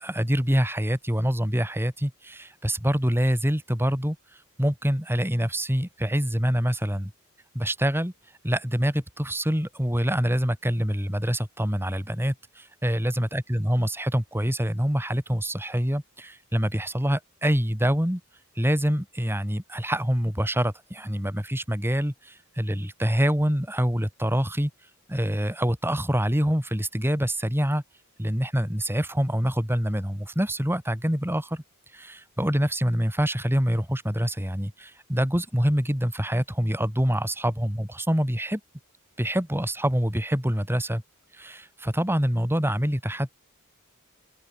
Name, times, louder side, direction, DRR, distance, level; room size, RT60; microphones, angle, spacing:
voice 1, 0.0-4.2 4.6-7.1 7.5-8.1 8.4-18.2 18.6-24.7 25.1-27.8 28.2-31.6 31.9-38.6 39.2-41.0 41.3-43.3, equal, 10° right, 4.1 m, -25 dB
open air
head